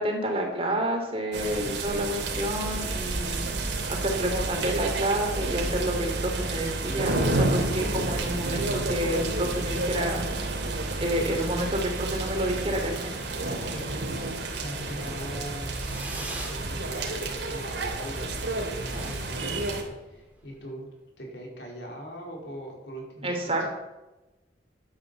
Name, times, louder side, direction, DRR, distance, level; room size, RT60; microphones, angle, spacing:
voice 1, 0.0-3.5 3.9-10.2 11.0-13.1 23.2-23.7, right 1 dB, 35° right, 2 dB, 3.0 m, -29 dB
sound 1, 1.3-19.8, right 2 dB, 80° right, 2.7 m, -31 dB
sound 2, 2.6-13.0, right 2 dB, 60° right, 0.7 m, -36 dB
voice 2, 13.6-14.0 14.3-15.7 16.5-20.9 21.2-23.7, equal, 80° left, -1 dB, 4.4 m, -41 dB
Fireworks, 15.7-16.6 17.0-17.5 17.8-17.9 18.2-18.3 18.5-18.6 18.9-20.5, right 2 dB, 10° right, 2.6 m, -40 dB
11.5 x 10.0 x 7.0 m, 1.0 s
head